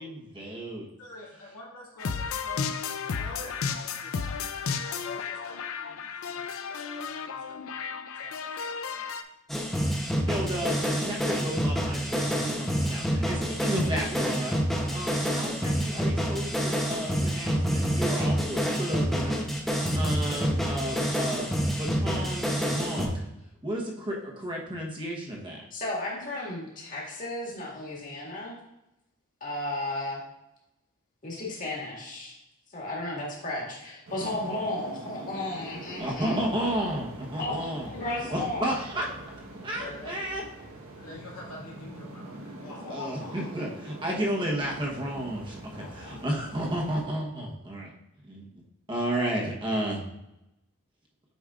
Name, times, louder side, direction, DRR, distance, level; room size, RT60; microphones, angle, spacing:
voice 1, 0.0-0.9 10.1-14.6 14.9-23.2 23.6-25.6 36.0-37.9 38.3-39.1 39.6-40.4 42.9-47.9 48.2-48.6 48.9-50.0, right 1 dB, 25° right, -2 dB, 1.0 m, -32 dB
voice 2, 1.0-2.7 3.0-7.8 8.2-9.0 39.7-40.2 41.0-43.5 45.7-46.3, left 2 dB, 90° left, -4 dB, 2.1 m, -46 dB
sound 1, 2.0-9.2, left 6 dB, 70° left, 0.5 m, -33 dB
sound 2, 9.5-23.1, equal, ahead, 0.8 m, -28 dB
voice 3, 25.7-28.6 29.4-30.2 31.2-32.4 32.7-36.4 37.4-38.7, left 1 dB, 40° left, -3 dB, 1.9 m, -34 dB
sound 3, 34.1-47.0, right 1 dB, 80° right, 1.3 m, -44 dB
8.1 x 5.2 x 2.4 m, 0.91 s
head